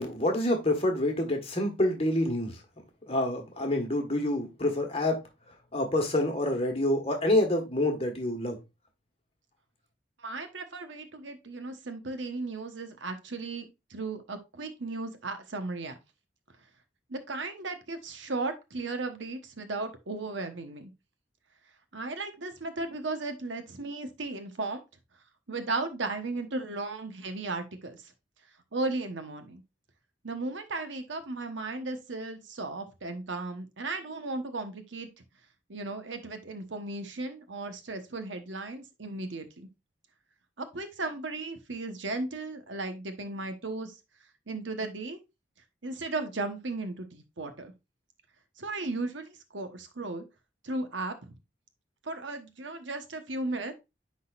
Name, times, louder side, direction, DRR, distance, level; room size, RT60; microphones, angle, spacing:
voice 1, 0.0-2.6 3.1-5.2 5.7-8.6, left 1 dB, 30° left, 3 dB, 1.5 m, -27 dB
voice 2, 10.2-15.9 17.1-20.9 21.9-24.8 25.5-28.0 28.7-29.6 30.2-35.1 35.7-39.7 40.6-43.9 44.5-45.2 45.8-47.7 48.6-50.2 50.6-51.3 52.0-53.7, right 3 dB, 80° right, 8 dB, 1.1 m, -35 dB
9.8 x 3.9 x 2.5 m, 0.23 s
head